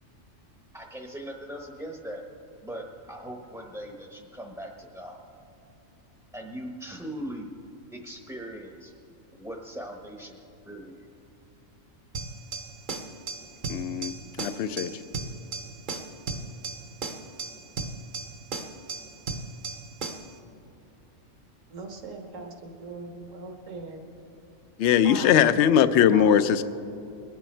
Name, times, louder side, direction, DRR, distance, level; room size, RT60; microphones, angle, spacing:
voice 1, 0.7-2.2 2.6-5.2 6.3-7.5 7.9-8.9 9.3-10.4 10.6-11.1, right 1 dB, 5° right, 1 dB, 0.7 m, -40 dB
sound 1, 12.1-20.3, right 3 dB, 45° right, 0.9 m, -36 dB
voice 2, 13.7-14.9 24.8-26.6, left 9 dB, 65° left, 13 dB, 0.8 m, -21 dB
voice 3, 21.7-24.0 25.0-25.6 26.1-26.5, right 3 dB, 70° right, 3 dB, 1.7 m, -39 dB
22.0 x 9.0 x 4.4 m, 2.6 s
omnidirectional pair, 1.4 m